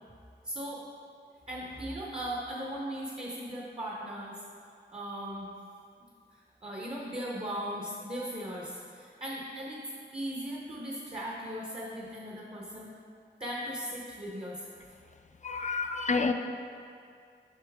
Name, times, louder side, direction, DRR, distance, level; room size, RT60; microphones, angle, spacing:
voice 1, 0.4-0.9 1.5-4.4 4.9-5.5 6.0-9.9 10.1-12.9 13.4-14.7 15.8-16.0, equal, 30° right, -3 dB, 0.8 m, -38 dB
voice 2, 15.4-16.3, left 4 dB, 40° left, 7 dB, 0.4 m, -29 dB
6.5 x 5.5 x 3.5 m, 2.3 s
wide cardioid pair, 60°, 19 cm